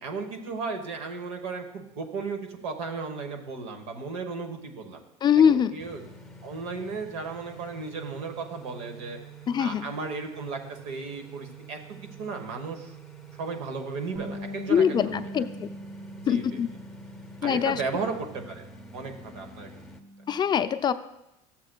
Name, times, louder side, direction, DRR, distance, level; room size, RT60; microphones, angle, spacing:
voice 1, 0.0-5.0 5.4-6.0 6.4-9.2 9.6-13.0 13.4-15.3 16.3-16.4 17.4-18.6 18.9-19.8, right 4 dB, 85° right, 5 dB, 1.1 m, -35 dB
voice 2, 5.2-5.7 9.5-9.9 14.7-15.7 16.3-16.7 17.4-17.8 20.3-20.9, left 8 dB, 30° left, 11 dB, 0.4 m, -23 dB
sound 1, 5.8-20.0, right 4 dB, ahead, 0.7 m, -47 dB
Bass guitar, 14.1-20.4, equal, 30° right, 0.8 m, -42 dB
13.0 x 7.3 x 2.2 m, 0.88 s
supercardioid pair, 110°, 15 cm